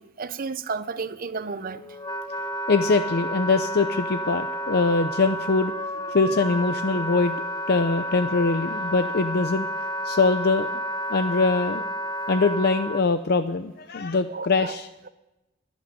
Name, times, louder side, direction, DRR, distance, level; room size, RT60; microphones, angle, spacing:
voice 1, 0.0-1.9 14.3-14.8, right 4 dB, 50° right, 0.7 m, -32 dB
Wind instrument woodwind instrument, 1.4-13.0, equal, 20° left, 0.8 m, -31 dB
voice 2, 2.7-5.8 6.1-7.4 7.7-9.7 10.0-10.7 11.1-11.8 12.3-14.9, left 3 dB, 55° left, 0.6 m, -23 dB
11.5 x 11.5 x 9.5 m
head